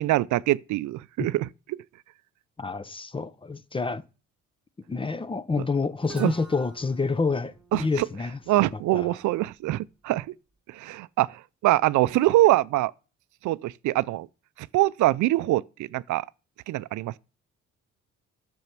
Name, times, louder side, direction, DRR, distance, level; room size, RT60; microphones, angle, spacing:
voice 1, 0.0-1.8 6.2-6.3 7.7-8.1 8.5-10.3 10.7-12.9 13.4-14.3 14.6-16.3 16.7-17.2, right 16 dB, 75° right, 0.5 m, -24 dB
voice 2, 2.6-4.0 4.9-8.4 8.7-9.2, left 4 dB, 15° left, 0.6 m, -28 dB
Guitar, 6.0-9.8, right 1 dB, 5° right, 2.4 m, -48 dB
11.0 x 7.1 x 5.9 m
cardioid pair, 90°, 30 cm